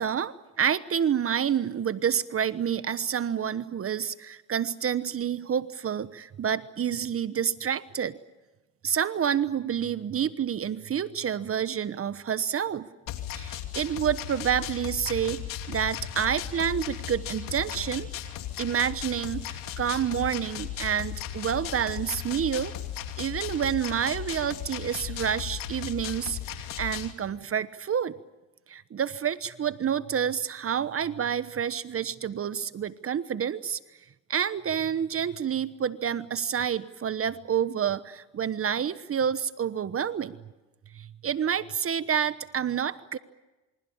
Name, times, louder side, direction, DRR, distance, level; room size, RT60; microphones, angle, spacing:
voice 1, 0.0-8.1 8.8-12.9 13.3-15.4 15.7-18.1 18.6-22.7 23.2-28.1 28.7-33.8 34.3-40.4 40.9-43.2, right 8 dB, 40° right, 14 dB, 1.1 m, -28 dB
sound 1, 13.1-27.1, left 11 dB, 80° left, 2.8 m, -36 dB
27.5 x 25.5 x 7.2 m, 1.1 s
supercardioid pair, 80°, 33 cm